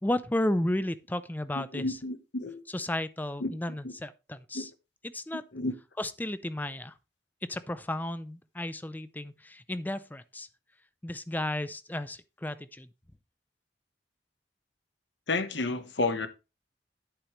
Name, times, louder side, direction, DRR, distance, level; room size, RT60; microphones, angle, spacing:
voice 1, 0.0-2.0 2.7-4.7 5.0-5.4 6.0-6.9 7.5-10.5 11.0-12.9, left 1 dB, 10° left, 0.5 m, -33 dB
voice 2, 1.6-2.6 3.4-3.5 4.5-4.7 5.5-5.7 15.3-16.3, left 3 dB, 80° left, 1.2 m, -31 dB
10.0 x 8.5 x 3.1 m
head